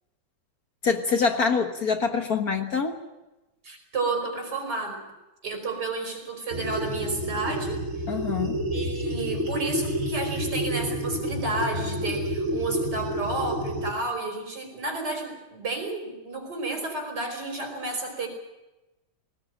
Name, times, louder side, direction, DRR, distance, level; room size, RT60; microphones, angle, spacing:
voice 1, 0.8-3.0 8.1-8.6, left 5 dB, 50° left, 6 dB, 1.8 m, -25 dB
voice 2, 3.6-5.0 5.4-8.1 8.7-18.3, right 3 dB, 55° right, 3 dB, 5.6 m, -31 dB
sound 1, 6.5-13.9, equal, 35° right, 2.0 m, -29 dB
20.5 x 18.5 x 9.0 m, 1.0 s
omnidirectional pair, 2.2 m